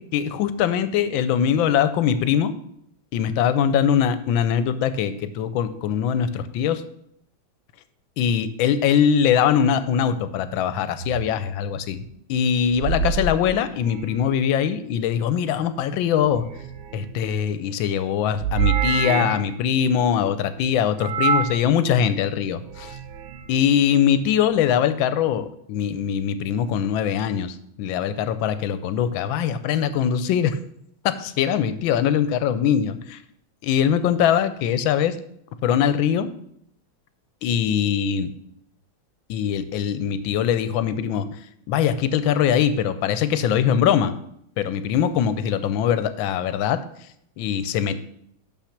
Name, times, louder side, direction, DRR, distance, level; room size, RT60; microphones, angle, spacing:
voice 1, 0.1-2.5 3.1-6.8 8.2-12.0 12.3-16.4 16.9-23.0 23.5-30.6 31.2-33.2 33.6-35.1 35.6-36.3 37.4-38.3 39.3-41.3 41.7-44.1 44.6-46.8 47.4-48.0, left 8 dB, 80° left, 12 dB, 1.3 m, -22 dB
sound 1, 11.0-11.3 12.6-14.3 16.2-17.3 18.4-19.5 21.0-21.6 22.6-23.5, right 6 dB, 85° right, 1.6 m, -26 dB
6.7 x 5.8 x 5.8 m, 0.71 s
omnidirectional pair, 2.2 m